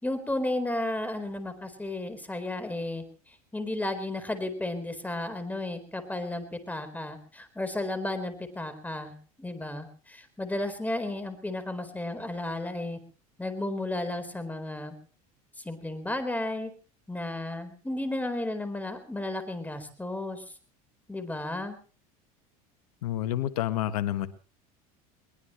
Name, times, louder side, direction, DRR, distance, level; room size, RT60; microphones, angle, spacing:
voice 1, 0.0-3.0 3.5-13.0 13.4-14.9 15.6-16.7 17.1-20.4 21.1-21.8, left 1 dB, 10° left, 9 dB, 4.3 m, -33 dB
voice 2, 23.0-24.3, left 13 dB, 80° left, 11 dB, 1.6 m, -29 dB
22.0 x 21.0 x 3.2 m, 0.38 s
hypercardioid pair, 90°, 19 cm